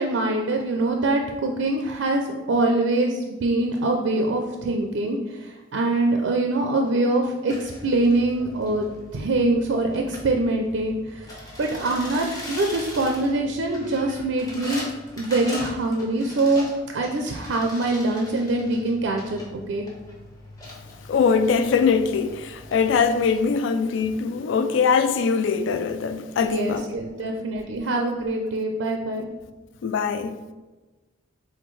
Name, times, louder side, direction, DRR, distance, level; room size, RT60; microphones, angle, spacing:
voice 1, 0.0-8.9 9.1-11.3 11.6-14.9 15.2-19.4 19.7-19.8 26.4-29.3, right 2 dB, 75° right, 0.4 m, -24 dB
sound 1, 7.5-23.5, left 1 dB, 20° left, 0.8 m, -41 dB
voice 2, 21.1-26.9 29.8-30.4, left 5 dB, 70° left, 0.3 m, -22 dB
4.2 x 3.8 x 3.2 m
head